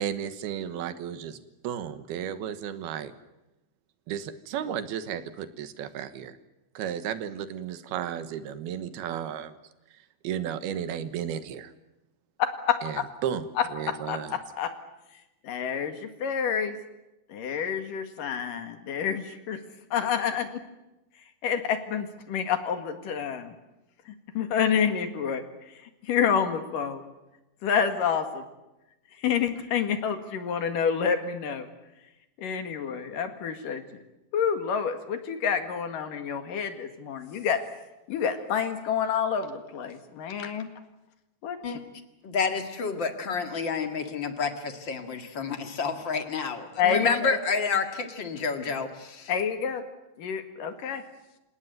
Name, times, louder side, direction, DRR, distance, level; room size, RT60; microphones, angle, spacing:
voice 1, 0.0-3.1 4.1-6.4 6.7-9.5 10.2-11.7 12.8-13.4 13.7-14.4, right 9 dB, 85° right, 11 dB, 3.2 m, -33 dB
voice 2, 12.7-13.0 13.6-13.7 14.1-14.7 15.4-16.8 17.3-19.6 19.9-20.6 21.4-23.5 24.1-25.7 26.0-27.0 27.6-28.4 29.2-31.7 32.4-33.8 34.3-37.6 38.1-40.7 41.4-41.8 46.8-47.4 49.3-49.8 50.2-51.0, left 7 dB, 65° left, 8 dB, 3.3 m, -28 dB
voice 3, 42.2-49.3, left 5 dB, 40° left, 7 dB, 1.9 m, -29 dB
27.0 x 18.0 x 9.4 m, 0.97 s
omnidirectional pair, 4.4 m